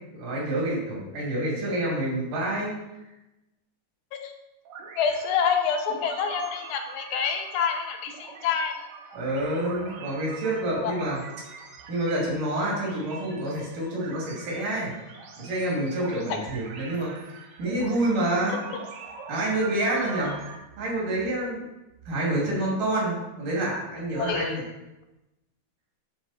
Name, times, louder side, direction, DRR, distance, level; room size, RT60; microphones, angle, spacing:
voice 1, 0.1-2.8 9.1-11.2 11.9-14.9 15.4-17.1 17.6-18.7 19.3-20.3 20.8-21.7 22.1-24.6, right 1 dB, 85° right, -4 dB, 4.1 m, -28 dB
sound 1, 4.7-20.6, right 5 dB, 65° right, 2.1 m, -43 dB
voice 2, 5.0-8.7 10.8-10.9 24.2-24.6, left 6 dB, 75° left, 5 dB, 2.2 m, -27 dB
11.5 x 4.6 x 4.2 m, 0.99 s
omnidirectional pair, 3.6 m